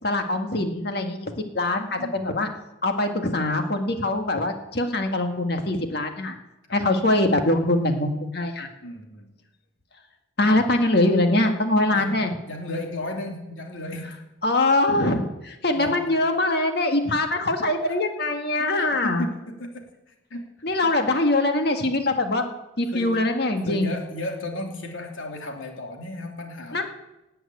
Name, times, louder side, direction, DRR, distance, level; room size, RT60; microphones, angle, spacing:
voice 1, 0.0-2.5 2.8-6.3 6.7-8.7 10.4-12.3 14.4-19.3 20.6-23.9 26.7-26.8, left 2 dB, 55° left, 5 dB, 1.7 m, -23 dB
voice 2, 8.8-9.3 11.9-14.2 15.7-16.1 17.8-17.9 18.6-19.8 20.3-20.5 20.8-21.0 22.9-23.2 23.7-26.8, left 1 dB, 85° left, 2 dB, 2.9 m, -34 dB
18.0 x 7.8 x 9.3 m, 0.97 s
head